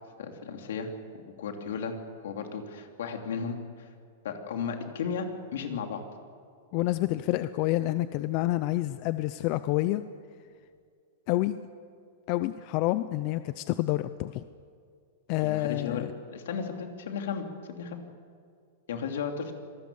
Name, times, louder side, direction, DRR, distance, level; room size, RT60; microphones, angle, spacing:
voice 1, 0.2-0.9 1.1-1.9 2.2-3.9 4.2-6.0 15.4-17.5 17.8-18.1 18.9-19.6, left 6 dB, 75° left, 4 dB, 3.2 m, -35 dB
voice 2, 6.7-10.0 11.3-11.6 12.3-14.4 15.3-16.1, left 16 dB, 35° left, 13 dB, 0.6 m, -28 dB
26.0 x 20.0 x 7.1 m, 2.2 s
supercardioid pair, 165°, 0 cm